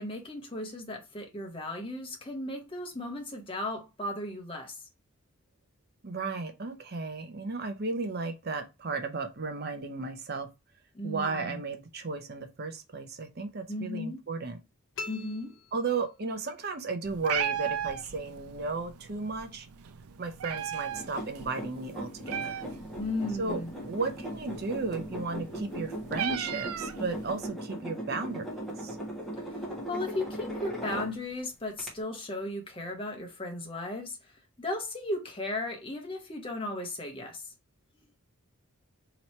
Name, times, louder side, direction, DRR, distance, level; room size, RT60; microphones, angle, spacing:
voice 1, 0.0-4.9 10.9-11.6 13.7-14.2 15.1-15.6 23.0-23.7 29.4-29.6 29.9-34.3 34.6-37.5, left 2 dB, 25° left, 0.9 m, -36 dB
voice 2, 6.0-10.5 11.0-14.6 15.7-19.7 20.2-22.6 23.4-28.5 28.8-29.0, right 3 dB, 45° right, 0.6 m, -34 dB
sound 1, 15.0-16.5, left 4 dB, 55° left, 0.6 m, -43 dB
Meow, 17.0-27.5, right 9 dB, 90° right, 0.4 m, -38 dB
sound 2, 20.9-31.4 31.8-31.9, equal, ahead, 1.1 m, -39 dB
3.0 x 3.0 x 4.2 m
head